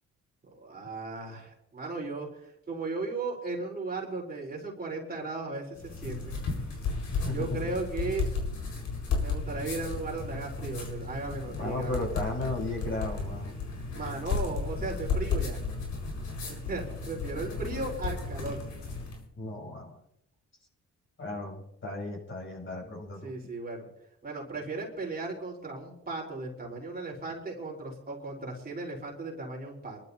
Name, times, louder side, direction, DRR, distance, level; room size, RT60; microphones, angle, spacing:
voice 1, 0.5-6.4 7.3-8.3 9.2-12.3 13.9-15.6 16.5-18.6 23.2-23.9 24.2-30.0, right 3 dB, 30° right, -2 dB, 3.8 m, -36 dB
sound 1, 5.8-19.2, left 4 dB, 75° left, 4.6 m, -34 dB
voice 2, 7.1-7.6 11.5-13.6 19.4-20.0 21.2-23.3, left 2 dB, 40° left, -2 dB, 7.2 m, -35 dB
27.5 x 12.0 x 2.7 m, 0.77 s
cardioid pair, 90°, 30 cm